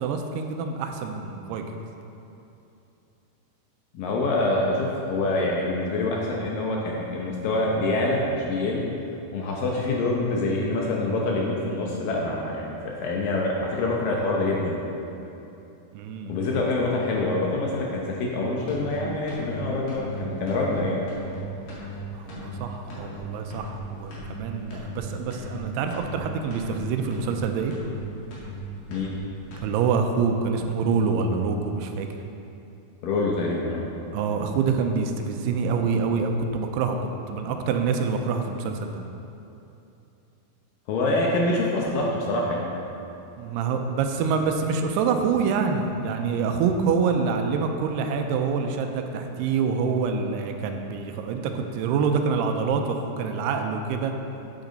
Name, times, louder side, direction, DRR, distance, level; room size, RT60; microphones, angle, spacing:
voice 1, 0.0-1.6 15.9-16.4 22.1-27.7 29.6-32.1 34.1-37.0 37.3-38.9 43.4-54.1, right 5 dB, 90° right, 5 dB, 2.7 m, -26 dB
voice 2, 3.9-8.8 9.3-14.8 16.3-21.0 28.9-29.1 33.0-33.9 40.9-42.7, left 2 dB, 75° left, -2 dB, 2.2 m, -26 dB
sound 1, 18.7-19.0 19.3-19.6 19.9-20.2 20.5-20.8 21.1-21.4 21.7-22.0 22.3-22.6 22.9-23.2 23.5-23.8 24.1-24.4 24.7-25.0 25.3-25.6 25.9-26.2 26.5-26.8 27.1-27.4 27.7-28.0 28.3-28.6 28.9-29.2 29.5-29.7, left 3 dB, 55° left, 3.3 m, -38 dB
9.2 x 8.9 x 4.0 m, 2.8 s
omnidirectional pair, 4.7 m